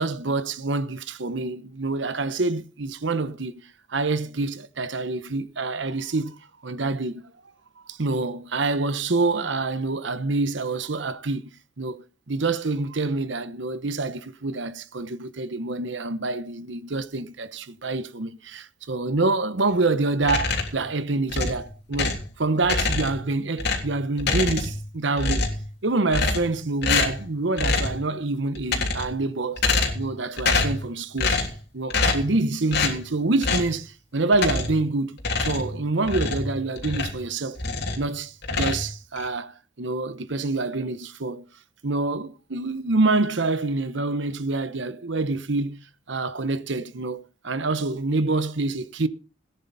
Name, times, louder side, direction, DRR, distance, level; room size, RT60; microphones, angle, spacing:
voice 1, 0.0-3.5 3.9-6.4 6.6-7.2 7.9-11.5 11.8-25.4 25.8-29.7 29.9-31.4 31.7-37.6 38.0-41.4 41.8-49.1, right 3 dB, 65° right, 1.0 m, -26 dB
sound 1, 20.2-20.8 21.3-22.3 22.6-23.3 23.6-24.9 25.1-25.7 26.1-26.6 26.8-27.2 27.6-28.0 28.5-29.2 29.6-30.1 30.4-30.8 31.2-31.6 31.9-32.3 32.7-33.0 33.4-33.7 34.3-34.8 35.2-37.2 37.6-38.1 38.4-39.3, left 3 dB, 55° left, 3.3 m, -25 dB
18.5 x 10.0 x 4.1 m
head